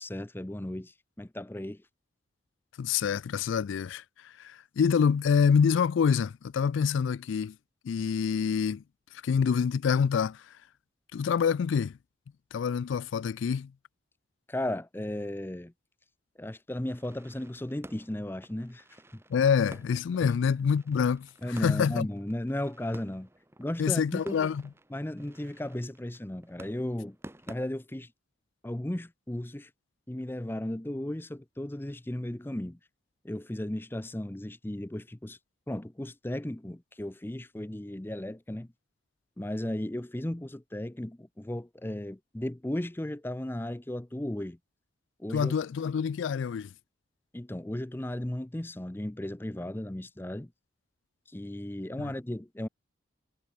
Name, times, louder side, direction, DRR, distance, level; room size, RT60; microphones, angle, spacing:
voice 1, 0.0-1.8 14.5-15.7 16.4-18.8 19.1-19.2 20.2-20.3 21.4-23.3 23.6-24.5 24.9-27.2 27.5-28.1 28.6-29.7 30.1-32.8 33.2-35.4 35.7-38.7 39.4-44.6 45.2-45.5 47.3-50.5 51.3-52.7, left 1 dB, 10° left, 0.5 m, -35 dB
voice 2, 2.8-7.6 7.8-8.8 9.2-10.5 11.1-12.0 12.5-13.7 19.3-22.1 23.8-24.6 45.3-46.7, left 6 dB, 75° left, 0.3 m, -26 dB
sound 1, 16.9-27.6, right 1 dB, 15° right, 1.4 m, -52 dB
head